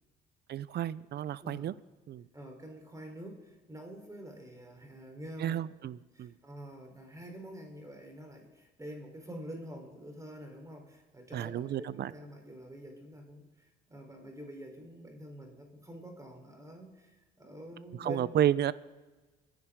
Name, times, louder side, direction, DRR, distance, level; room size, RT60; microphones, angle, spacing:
voice 1, 0.5-1.7 2.1-2.3 5.4-6.3 11.3-12.1 18.0-18.7, right 11 dB, 55° right, 18 dB, 0.7 m, -31 dB
voice 2, 2.3-5.6 6.1-18.2, equal, 15° right, 2 dB, 3.9 m, -47 dB
26.0 x 10.5 x 3.8 m, 1.2 s
supercardioid pair, 70°, 21 cm